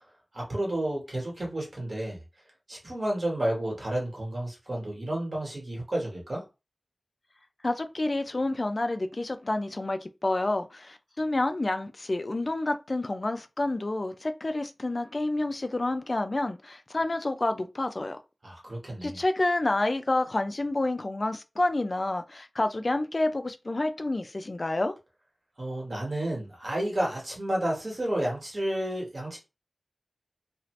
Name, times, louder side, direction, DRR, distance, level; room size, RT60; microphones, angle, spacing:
voice 1, 0.3-2.2 2.7-6.4 18.4-19.2 25.6-29.4, right 1 dB, 50° right, 1.4 m, -31 dB
voice 2, 7.6-18.2 19.0-24.9, left 2 dB, 45° left, 0.4 m, -29 dB
2.7 x 2.4 x 3.2 m
wide cardioid pair, 75°, 0 cm